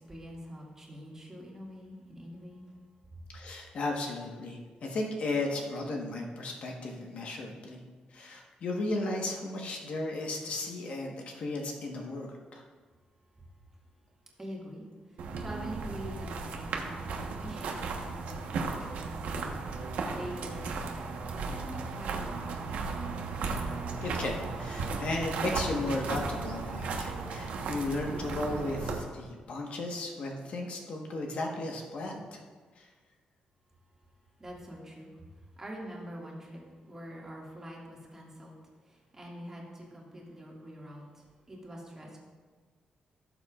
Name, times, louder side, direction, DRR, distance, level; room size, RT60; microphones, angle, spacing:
voice 1, 0.0-2.8 3.1-3.2 13.4-13.5 14.4-21.0 21.5-23.1 34.4-35.2 35.6-38.6 38.8-42.2, equal, 20° right, -3 dB, 2.0 m, -45 dB
voice 2, 3.3-7.8 8.1-12.6 24.0-32.4 32.8-32.9, left 2 dB, 55° left, 0 dB, 1.3 m, -35 dB
sound 1, 15.2-29.0, right 4 dB, 85° right, 1.2 m, -35 dB
17.0 x 7.1 x 2.4 m, 1.5 s
cardioid pair, 135°, 3 cm